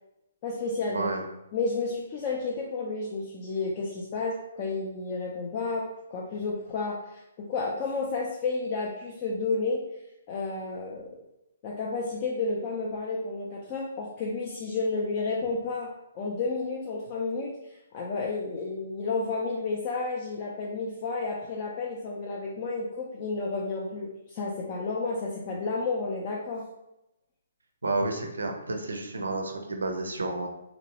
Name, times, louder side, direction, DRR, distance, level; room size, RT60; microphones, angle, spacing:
voice 1, 0.4-1.1 1.5-9.8 10.3-11.1 11.6-15.9 16.1-17.5 17.9-26.6, left 3 dB, 35° left, -2 dB, 0.4 m, -31 dB
voice 2, 0.9-1.2 27.8-30.5, right 2 dB, 75° right, 3 dB, 0.5 m, -30 dB
2.9 x 2.0 x 2.9 m, 0.89 s
figure-of-eight pair, 130°, 0 cm